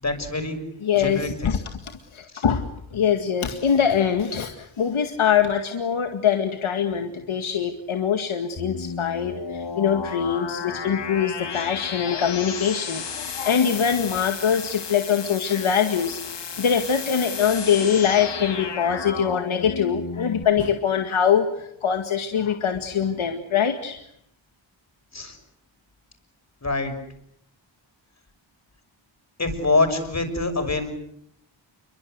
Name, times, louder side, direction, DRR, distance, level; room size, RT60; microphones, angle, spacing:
voice 1, 0.0-0.6 0.9-1.5 2.3-2.4 11.5-11.7 25.1-25.4 26.6-26.9 29.4-30.9, left 3 dB, 35° left, 6 dB, 6.5 m, -25 dB
voice 2, 0.8-1.6 2.1-2.6 2.9-24.0, left 7 dB, 80° left, 5 dB, 2.1 m, -23 dB
sound 1, 8.6-20.4, left 6 dB, 60° left, 2.3 m, -33 dB
29.0 x 24.0 x 8.1 m, 0.73 s
wide cardioid pair, 100°, 48 cm